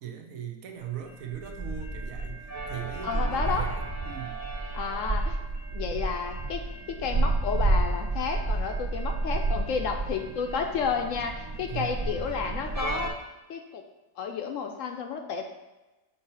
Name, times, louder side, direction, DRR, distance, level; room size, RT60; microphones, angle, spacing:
voice 1, 0.0-4.4 11.7-12.0, right 9 dB, 70° right, 3 dB, 1.1 m, -39 dB
sound 1, 1.0-13.1, right 2 dB, 25° right, 0.4 m, -30 dB
voice 2, 3.0-3.7 4.7-5.4 5.7-6.6 7.0-13.1 13.5-13.8 14.2-15.5, left 6 dB, 70° left, 4 dB, 0.8 m, -31 dB
6.4 x 2.8 x 5.5 m, 1.1 s
omnidirectional pair, 1.6 m